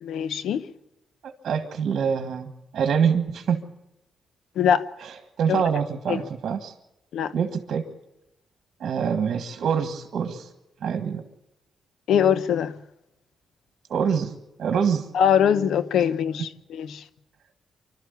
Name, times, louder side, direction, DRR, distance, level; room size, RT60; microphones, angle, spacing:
voice 1, 0.0-0.6 4.6-4.8 5.5-5.6 6.1-6.2 7.1-7.3 12.1-12.7 15.1-17.0, left 8 dB, 85° left, 0.9 m, -22 dB
voice 2, 1.4-3.6 5.0-6.7 7.3-7.8 8.8-10.5 10.8-11.2 13.9-14.3 14.6-15.1, right 7 dB, 70° right, 1.7 m, -25 dB
26.0 x 12.5 x 8.3 m
cardioid pair, 95°, 0 cm